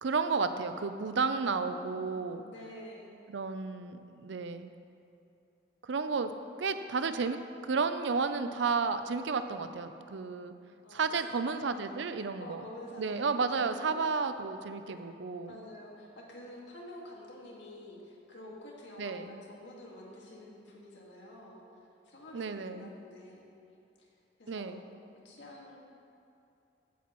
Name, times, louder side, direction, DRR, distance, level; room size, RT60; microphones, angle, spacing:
voice 1, 0.0-2.4 3.3-4.7 5.8-6.3 6.6-10.5 10.9-12.6 13.0-15.5 19.0-19.3 22.3-22.9 24.5-24.8, right 4 dB, 70° right, 10 dB, 0.5 m, -32 dB
voice 2, 1.4-3.1 10.8-14.0 15.5-21.6 22.0-23.5 24.0-24.1 24.4-24.8 25.2-25.8, left 1 dB, 70° left, -3 dB, 1.9 m, -49 dB
15.5 x 8.4 x 3.1 m, 2.6 s
head